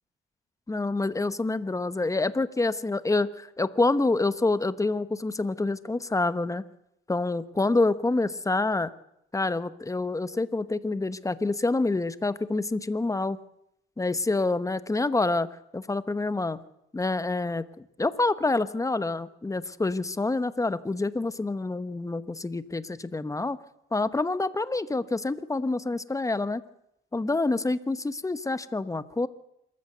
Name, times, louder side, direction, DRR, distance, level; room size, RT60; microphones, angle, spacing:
voice 1, 0.7-6.6 7.1-8.9 9.3-13.4 14.0-15.5 15.7-16.6 16.9-23.6 23.9-26.6 27.1-29.3, left 2 dB, 15° left, 14 dB, 1.1 m, -27 dB
26.0 x 14.0 x 8.0 m, 0.80 s
cardioid pair, 90°, 20 cm